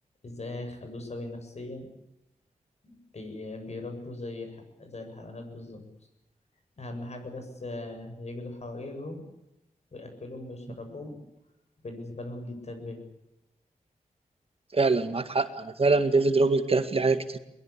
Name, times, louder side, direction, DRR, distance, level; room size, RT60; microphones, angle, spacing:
voice 1, 0.2-1.9 2.8-5.8 6.8-9.2 9.9-11.2 11.8-13.0, left 2 dB, 55° left, 6 dB, 7.8 m, -39 dB
voice 2, 14.7-17.4, right 3 dB, 45° right, 10 dB, 1.9 m, -24 dB
22.5 x 21.0 x 8.7 m, 0.88 s
wide cardioid pair, 85°, 14 cm